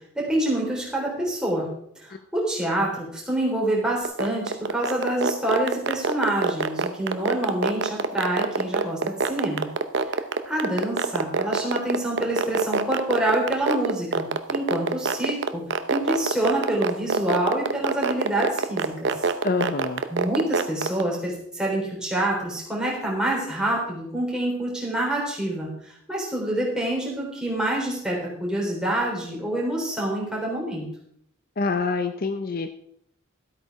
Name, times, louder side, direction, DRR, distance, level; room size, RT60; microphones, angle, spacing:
voice 1, 0.2-1.7 2.0-9.7 10.5-15.6 15.9-19.1 20.1-25.7 26.1-30.9, right 1 dB, 5° right, -3 dB, 3.8 m, -26 dB
sound 1, 4.0-21.0, right 4 dB, 55° right, 0.7 m, -23 dB
voice 2, 19.4-20.1 31.6-32.7, left 4 dB, 45° left, 9 dB, 0.5 m, -26 dB
13.0 x 8.6 x 4.7 m, 0.69 s
head